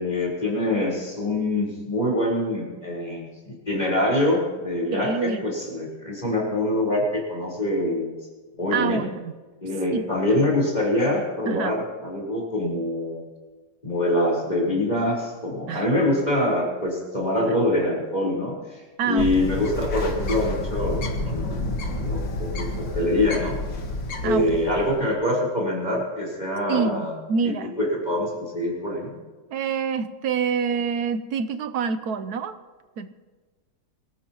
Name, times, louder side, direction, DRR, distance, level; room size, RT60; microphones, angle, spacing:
voice 1, 0.0-8.2 8.6-9.0 9.6-13.3 13.8-21.6 22.0-23.5 24.2-27.1 27.4-29.1, left 1 dB, 20° left, -3 dB, 4.4 m, -25 dB
voice 2, 4.9-5.5 8.7-9.3 9.9-10.0 11.5-11.8 15.7-15.9 19.0-19.5 24.2-24.7 26.7-27.7 29.5-32.6 33.0-33.1, right 5 dB, 65° right, 11 dB, 1.2 m, -27 dB
Bird, 19.2-25.1, left 2 dB, 80° left, 2.4 m, -29 dB
24.5 x 13.5 x 3.0 m, 1.3 s
omnidirectional pair, 2.0 m